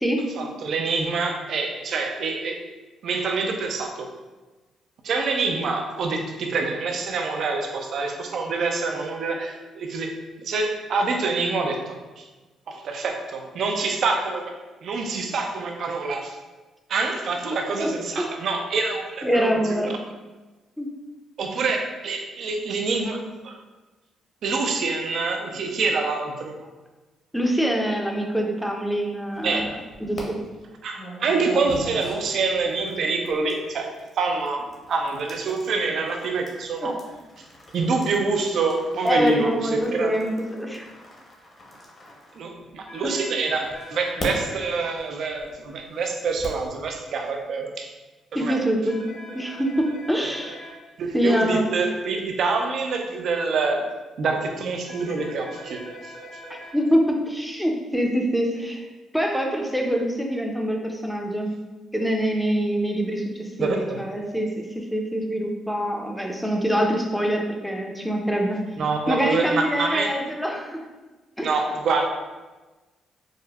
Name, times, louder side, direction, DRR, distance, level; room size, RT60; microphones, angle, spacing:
voice 1, 0.4-2.6 3.0-4.1 5.0-10.1 10.4-12.2 12.7-14.5 14.8-16.4 16.9-19.8 21.4-23.6 24.4-26.7 29.4-29.8 30.8-33.9 34.2-37.0 37.7-40.1 42.3-47.9 48.3-48.6 51.0-53.9 54.2-56.1 63.6-64.0 68.8-70.1 71.4-72.1, right 4 dB, 65° right, 3 dB, 0.4 m, -26 dB
voice 2, 17.5-18.3 19.2-20.0 20.8-20.9 27.3-30.4 36.8-36.9 39.0-40.9 43.0-43.2 48.3-49.0 49.3-50.7 51.1-51.6 56.5-58.9 59.1-61.5 61.9-68.6 69.1-70.8 71.4-71.5, equal, ahead, 1 dB, 0.5 m, -25 dB
sound 1, 29.3-30.2 31.0-43.0 43.6-46.7, equal, 45° left, 0.8 m, -41 dB
sound 2, 42.9-44.7 48.9-50.7 54.9-56.7, equal, 75° left, 0.9 m, -42 dB
4.9 x 2.1 x 2.3 m, 1.2 s
cardioid pair, 90°, 0 cm